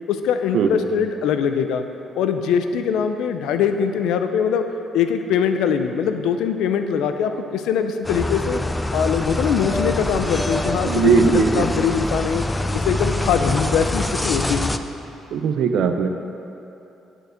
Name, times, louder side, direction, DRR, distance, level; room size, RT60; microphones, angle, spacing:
voice 1, 0.1-1.9 2.2-4.6 4.9-8.6 8.9-12.5 12.7-14.6, left 7 dB, 90° left, 8 dB, 0.4 m, -22 dB
sound 1, 8.0-14.8, left 1 dB, 15° left, 0.3 m, -25 dB
voice 2, 10.8-11.6 15.3-16.1, right 6 dB, 75° right, 7 dB, 0.5 m, -18 dB
10.5 x 4.5 x 5.1 m, 2.9 s
cardioid pair, 90°, 0 cm